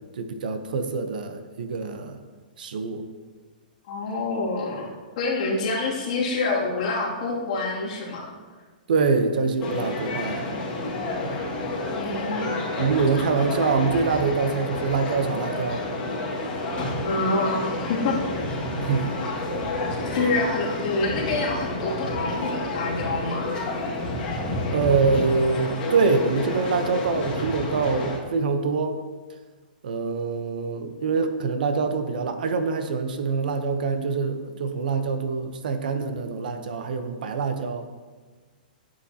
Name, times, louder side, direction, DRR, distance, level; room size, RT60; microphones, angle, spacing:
voice 1, 0.2-2.2 2.6-3.0 8.9-10.5 11.2-11.5 12.8-15.8 18.8-19.1 20.2-20.3 24.7-29.0 29.8-37.9, right 4 dB, 65° right, 7 dB, 0.9 m, -25 dB
voice 2, 3.9-8.3 11.9-12.5 17.0-18.4 20.1-23.5, left 3 dB, 45° left, -5 dB, 2.6 m, -27 dB
sound 1, 9.6-28.2, left 2 dB, 20° left, 2.0 m, -30 dB
11.5 x 7.9 x 2.9 m, 1.4 s
hypercardioid pair, 170°, 5 cm